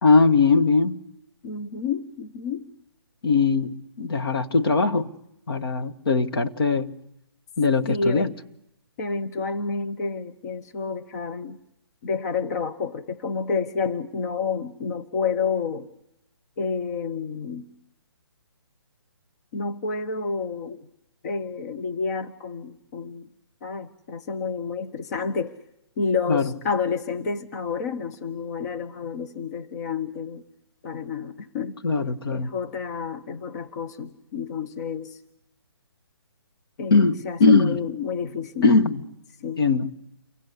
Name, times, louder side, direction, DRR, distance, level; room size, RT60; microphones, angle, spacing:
voice 1, 0.0-1.0 3.2-5.1 5.5-6.9 7.6-8.3 26.3-26.5 31.8-32.5 36.9-37.8 38.6-39.0 39.6-39.9, left 4 dB, 60° left, 1.9 m, -20 dB
voice 2, 1.4-2.7 7.9-8.3 9.0-11.6 12.0-15.9 16.6-17.7 19.5-20.9 21.2-23.3 23.6-25.6 26.0-30.4 30.8-31.8 32.3-35.2 36.8-38.7 39.4-39.6, left 5 dB, 40° left, 1.2 m, -29 dB
29.0 x 24.0 x 8.4 m
hypercardioid pair, 150°, 14 cm